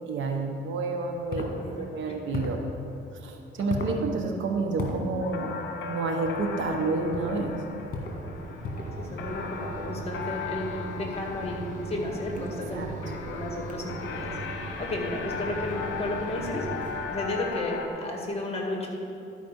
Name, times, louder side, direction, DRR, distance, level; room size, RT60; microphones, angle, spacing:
voice 1, 0.1-2.6 3.2-5.6 5.8-7.6 12.3-12.4 12.7-12.9, right 3 dB, 75° right, 3 dB, 1.1 m, -29 dB
sound 1, 1.0-17.9, left 6 dB, 70° left, 0.9 m, -38 dB
sound 2, 1.3-1.5 2.3-2.6 3.7-4.0 4.8-5.0 6.2-6.5 7.1-7.4 7.9-8.2 8.6-9.0, left 2 dB, 50° left, 1.8 m, -34 dB
voice 2, 1.5-2.1 3.6-4.0 9.0-14.3 14.8-16.7 17.1-18.9, left 1 dB, 30° left, 0 dB, 1.8 m, -33 dB
Mechanisms, 6.5-17.3, right 3 dB, 40° right, 1.4 m, -40 dB
12.0 x 5.0 x 5.3 m, 2.7 s
cardioid pair, 90°, 20 cm